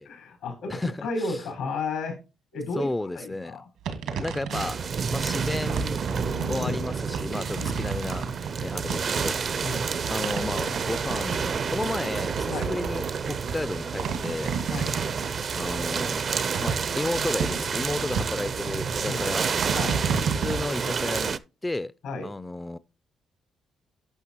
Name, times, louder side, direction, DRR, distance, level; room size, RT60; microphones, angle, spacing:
voice 1, 0.1-2.2 2.5-2.9 3.1-3.7 6.1-6.8 7.5-7.7 8.8-8.9 9.6-9.9 12.5-12.7 14.7-14.9 19.0-19.2 19.7-20.1 22.0-22.3, left 3 dB, 90° left, 4.7 m, -33 dB
voice 2, 0.7-1.4 2.8-3.6 4.2-4.8 5.1-6.0 6.5-8.2 8.6-9.4 10.1-14.6 15.6-16.3 16.6-19.5 20.4-21.9 22.2-22.8, left 2 dB, 15° left, 0.4 m, -32 dB
sound 1, 3.8-20.6, right 6 dB, 90° right, 1.7 m, -32 dB
sound 2, 4.5-21.4, right 6 dB, 50° right, 0.5 m, -29 dB
11.0 x 6.0 x 2.9 m
cardioid pair, 90°, 0 cm